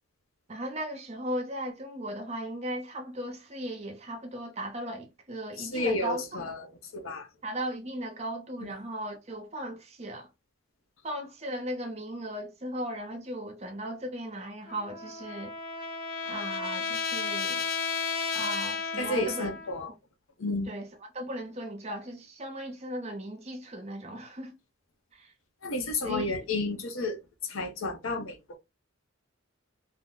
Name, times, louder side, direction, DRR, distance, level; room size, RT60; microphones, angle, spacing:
voice 1, 0.5-6.2 7.4-10.3 11.0-15.5 16.2-17.7 18.3-19.5 19.8-20.0 20.6-24.6 25.1-25.3 26.0-26.3, right 1 dB, 30° right, 0.7 m, -37 dB
voice 2, 5.6-7.3 19.0-19.9 20.4-20.7 25.6-27.2 27.5-28.6, left 2 dB, 75° left, 0.7 m, -31 dB
Trumpet, 14.7-19.8, left 5 dB, 45° left, 0.5 m, -33 dB
2.7 x 2.0 x 3.6 m
head